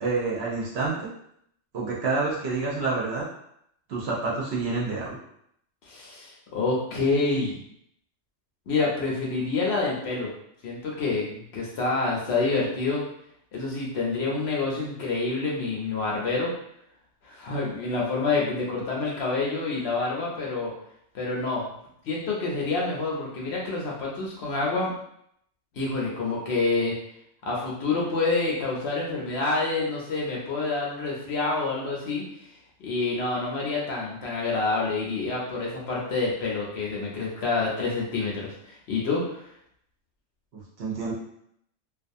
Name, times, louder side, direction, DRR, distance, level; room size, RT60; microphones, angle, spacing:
voice 1, 0.0-1.1 1.7-3.3 3.9-5.2 40.5-41.1, right 3 dB, 60° right, -4 dB, 0.8 m, -28 dB
voice 2, 5.8-7.6 8.7-10.3 10.6-13.0 13.5-16.5 17.2-20.7 21.1-21.7 22.0-24.9 25.7-27.0 27.4-32.2 32.8-39.4, left 3 dB, 65° left, -4 dB, 0.8 m, -27 dB
2.4 x 2.3 x 2.6 m, 0.73 s
omnidirectional pair, 1.4 m